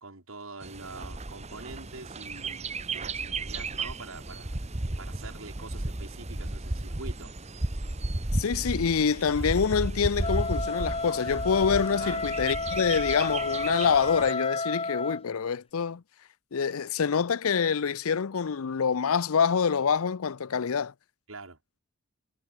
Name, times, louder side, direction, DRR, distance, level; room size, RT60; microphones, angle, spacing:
voice 1, 0.0-4.5 5.0-7.3 12.0-12.3 21.3-21.6, right 3 dB, 70° right, 3.1 m, -44 dB
Bird, 0.6-14.3, right 2 dB, 30° right, 1.3 m, -34 dB
voice 2, 8.4-16.0 16.5-20.9, left 6 dB, 80° left, 0.6 m, -26 dB
Wind instrument woodwind instrument, 10.2-15.2, left 3 dB, 25° left, 2.4 m, -32 dB
head